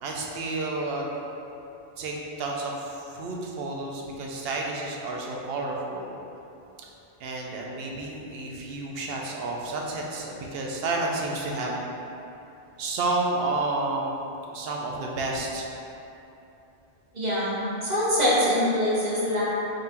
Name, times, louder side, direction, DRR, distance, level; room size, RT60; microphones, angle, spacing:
voice 1, 0.0-1.1 2.0-6.1 7.2-11.9 12.8-14.3 14.5-15.7, right 2 dB, 70° right, -1 dB, 0.8 m, -30 dB
voice 2, 17.1-19.4, equal, 45° right, -8 dB, 1.0 m, -24 dB
3.7 x 2.6 x 4.3 m, 2.9 s
omnidirectional pair, 1.1 m